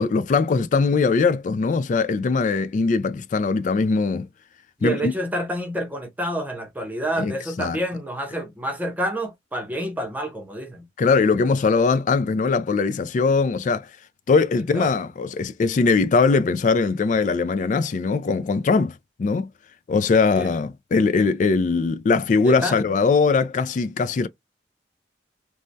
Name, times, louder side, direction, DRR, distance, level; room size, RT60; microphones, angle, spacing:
voice 1, 0.0-4.3 4.8-5.1 7.2-7.3 7.6-7.8 11.0-13.9 14.3-19.5 19.9-24.3, left 4 dB, 45° left, 0.3 m, -21 dB
voice 2, 4.8-10.9 14.7-14.9 20.3-20.5 22.4-22.8, right 1 dB, 10° right, 0.6 m, -28 dB
3.3 x 2.1 x 2.6 m
head